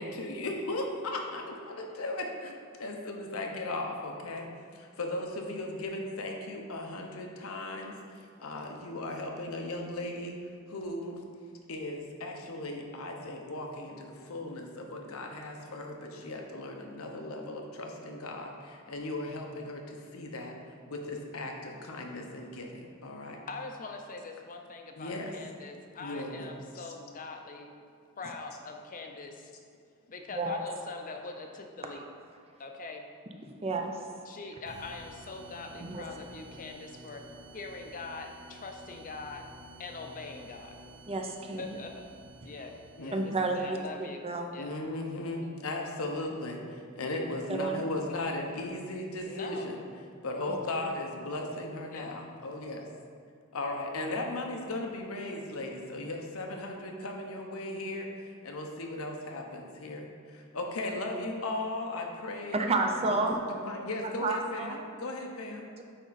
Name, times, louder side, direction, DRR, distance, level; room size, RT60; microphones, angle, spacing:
voice 1, 0.0-10.4 10.7-11.2 11.7-20.5 20.9-23.4 25.0-25.3 26.0-26.9 43.0-43.2 44.6-49.8 50.2-52.9 53.5-65.7, left 2 dB, 85° left, 1 dB, 0.9 m, -37 dB
voice 2, 23.5-27.7 28.2-29.5 30.1-32.0 32.6-33.0 34.3-37.2 37.5-39.4 39.8-40.8 41.6-42.1 42.4-42.7 43.0-44.2 44.5-44.7 45.4-45.5 49.2-49.7 51.9-52.2, left 3 dB, 40° left, 4 dB, 0.6 m, -43 dB
voice 3, 33.6-34.0 35.8-36.1 41.1-41.8 43.1-44.5 47.5-47.8 50.7-50.9 62.5-63.4 64.2-64.8 65.8-65.9, right 3 dB, 30° right, 3 dB, 0.5 m, -31 dB
sound 1, 34.7-44.0, right 1 dB, 60° right, 0.9 m, -51 dB
8.9 x 3.7 x 4.1 m, 2.2 s
head